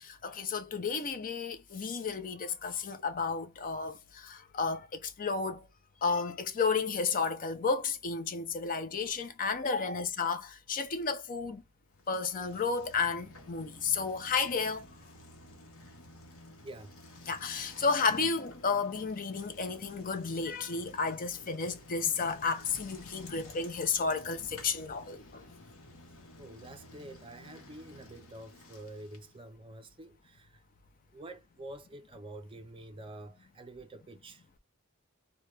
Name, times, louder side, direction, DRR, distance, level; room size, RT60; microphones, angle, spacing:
voice 1, 0.0-5.6 6.0-11.6 12.1-14.9 17.3-25.4, left 4 dB, 40° left, 0.5 m, -32 dB
Bicycle, 11.9-29.5, left 1 dB, 85° left, 0.9 m, -53 dB
voice 2, 26.4-30.6 31.1-34.4, right 1 dB, 25° right, 0.5 m, -48 dB
2.9 x 2.2 x 3.2 m
head